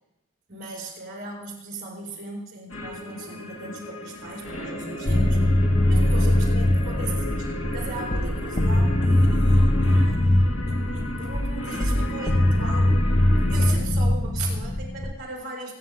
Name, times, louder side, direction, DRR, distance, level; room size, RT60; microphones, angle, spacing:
voice 1, 0.5-5.6 5.9-13.0 13.4-15.7, right 2 dB, 40° right, -3 dB, 5.7 m, -38 dB
sound 1, 2.7-13.8, left 1 dB, 70° left, 2.6 m, -34 dB
sound 2, 5.1-15.1, left 1 dB, 35° left, 1.1 m, -21 dB
25.0 x 10.0 x 3.8 m, 0.86 s
head